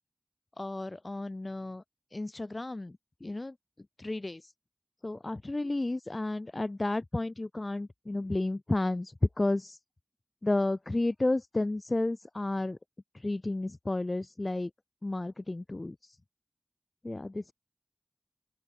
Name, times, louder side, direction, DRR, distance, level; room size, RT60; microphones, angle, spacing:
voice 1, 0.6-1.8 2.1-3.5 4.0-4.4 5.0-9.8 10.4-12.8 13.2-14.7 15.0-16.0 17.0-17.5, left 2 dB, 70° left, 7.9 m, -32 dB
open air
wide cardioid pair, 40°, 0 cm